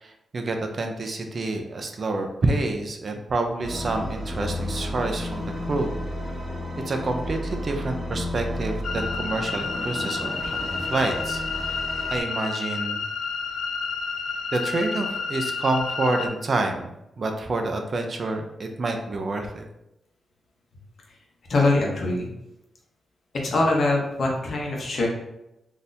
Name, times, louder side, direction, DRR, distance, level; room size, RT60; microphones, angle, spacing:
voice 1, 0.0-5.9 6.9-10.6 10.8-11.8 12.1-13.0 14.5-19.7, right 2 dB, 45° right, 4 dB, 0.4 m, -28 dB
sound 1, 3.6-12.2, left 1 dB, 5° left, 0.9 m, -32 dB
sound 2, 8.8-16.3, left 5 dB, 80° left, 0.3 m, -30 dB
voice 2, 21.5-22.3 23.4-25.1, left 2 dB, 60° left, -1 dB, 0.8 m, -23 dB
3.8 x 2.7 x 2.6 m, 0.88 s
wide cardioid pair, 115°, 0 cm